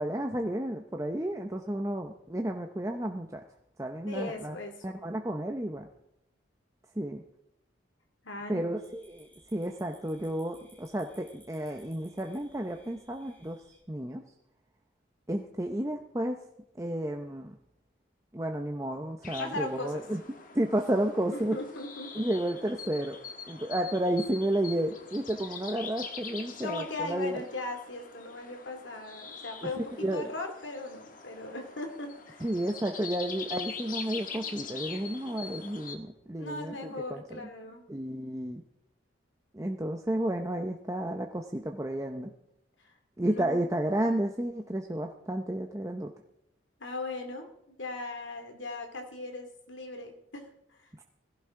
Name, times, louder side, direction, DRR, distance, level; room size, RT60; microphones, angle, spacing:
voice 1, 0.0-3.4 3.8-4.6 4.8-5.9 7.0-7.2 8.5-14.2 15.3-16.4 16.8-17.5 18.3-20.2 20.5-21.6 22.2-23.2 23.5-27.4 29.6-29.7 30.0-30.3 32.4-37.4 37.9-38.6 39.5-42.3 43.2-46.1 51.0-51.1, right 1 dB, 15° right, 3 dB, 0.7 m, -32 dB
voice 2, 4.1-4.7 8.2-8.7 19.4-20.0 21.3-22.2 26.6-32.5 36.4-37.8 42.8-43.0 43.2-43.7 46.8-47.5 47.8-50.9, left 2 dB, 75° left, 4 dB, 2.6 m, -38 dB
sound 1, 8.7-13.8, right 1 dB, 10° left, 5.8 m, -61 dB
sound 2, 19.2-36.0, left 5 dB, 45° left, 1.4 m, -44 dB
17.5 x 16.0 x 3.8 m, 0.84 s
head